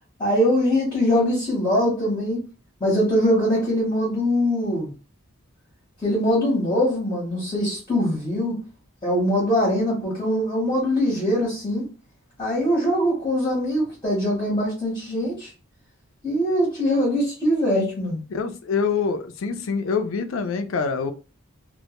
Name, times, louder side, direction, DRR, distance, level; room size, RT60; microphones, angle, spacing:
voice 1, 0.2-2.4 2.8-4.9 6.0-8.6 9.0-11.8 12.4-15.5 16.2-18.2, equal, 20° left, 0.7 m, -22 dB
voice 2, 18.3-21.1, left 5 dB, 60° left, 0.3 m, -25 dB
2.1 x 2.1 x 2.8 m
head